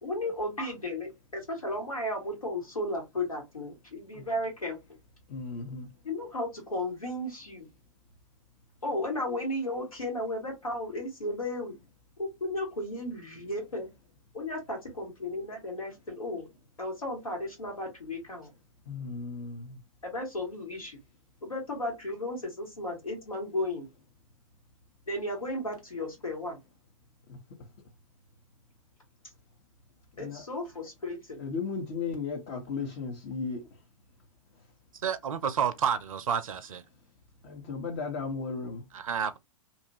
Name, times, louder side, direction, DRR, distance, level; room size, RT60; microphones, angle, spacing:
voice 1, 0.0-4.8 6.0-7.7 8.8-11.8 12.2-13.9 14.3-16.5 16.8-18.5 20.0-21.0 21.4-23.9 25.1-26.6 30.2-31.4, left 1 dB, 85° left, 1.7 m, -34 dB
voice 2, 5.3-5.9 18.9-19.8 27.3-27.4 30.2-30.5 31.4-33.7 37.4-38.8, left 4 dB, 45° left, 0.9 m, -35 dB
voice 3, 35.0-36.8 38.9-39.4, right 7 dB, 75° right, 0.5 m, -30 dB
2.7 x 2.4 x 2.8 m
figure-of-eight pair, 110°, 18 cm